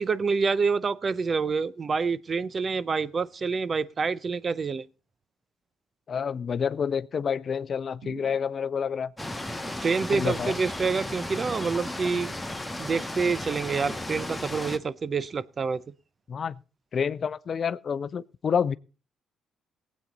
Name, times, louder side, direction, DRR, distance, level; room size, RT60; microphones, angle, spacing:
voice 1, 0.0-4.8 9.6-12.3 12.8-15.8, right 5 dB, 45° right, 0.7 m, -27 dB
voice 2, 6.1-9.1 10.1-10.5 16.3-16.6 16.9-18.8, left 7 dB, 55° left, 0.5 m, -28 dB
sound 1, 8.0-8.9 12.0-12.9, right 3 dB, 80° right, 5.0 m, -48 dB
sound 2, 9.2-14.8, left 1 dB, 10° left, 1.7 m, -35 dB
19.0 x 8.4 x 4.0 m
supercardioid pair, 55°, 0 cm